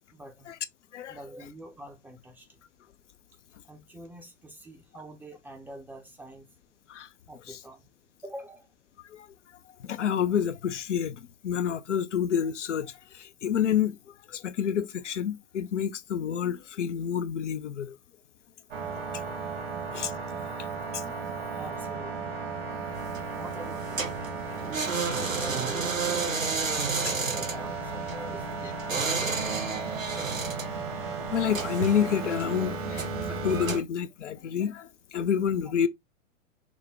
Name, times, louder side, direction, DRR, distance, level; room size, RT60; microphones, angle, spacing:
voice 1, 0.1-0.5 1.1-2.6 3.6-6.5 7.3-7.9 8.2-8.7 21.5-22.4 23.4-24.1 24.6-26.7 27.3-28.8, right 1 dB, 5° right, 0.6 m, -46 dB
voice 2, 9.8-18.0 19.9-20.1 20.6-21.5 29.1-29.3 31.3-35.9, left 8 dB, 65° left, 0.5 m, -29 dB
sound 1, 18.7-33.8, right 4 dB, 50° right, 1.3 m, -35 dB
sound 2, 22.9-33.8, right 4 dB, 90° right, 0.7 m, -32 dB
6.0 x 2.1 x 3.4 m
figure-of-eight pair, 100°, 39 cm